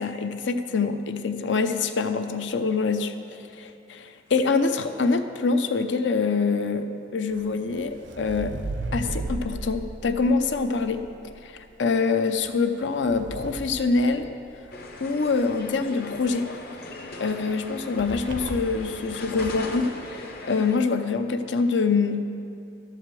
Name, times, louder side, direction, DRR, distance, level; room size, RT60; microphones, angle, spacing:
voice 1, 0.0-3.1 3.6-6.9 7.1-8.5 8.9-11.0 11.4-14.3 15.0-16.5 17.2-22.3, left 4 dB, 80° left, 8 dB, 0.6 m, -25 dB
sound 1, 7.3-11.4 12.4-14.7 18.0-18.9 19.3-19.7, right 2 dB, 75° right, 0.7 m, -36 dB
sound 2, 14.7-20.8, left 2 dB, 55° left, 0.9 m, -39 dB
12.5 x 5.0 x 7.5 m, 2.6 s
head